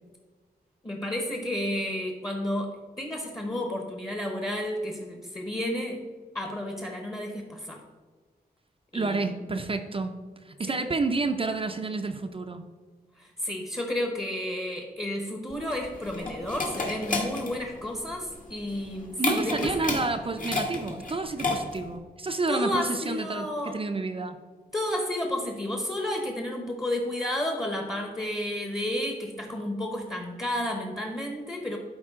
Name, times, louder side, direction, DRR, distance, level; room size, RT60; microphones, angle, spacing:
voice 1, 0.8-2.7 3.0-6.0 6.3-7.8 8.9-9.2 13.2-20.0 22.5-23.7 24.7-31.8, left 1 dB, 20° left, 2 dB, 1.0 m, -31 dB
voice 2, 8.9-10.1 10.4-12.6 19.2-24.4, right 3 dB, 35° right, 6 dB, 0.5 m, -30 dB
sound 1, 15.5-22.0, left 2 dB, 55° left, 1.5 m, -31 dB
12.0 x 4.7 x 3.7 m, 1.4 s
wide cardioid pair, 125°, 17 cm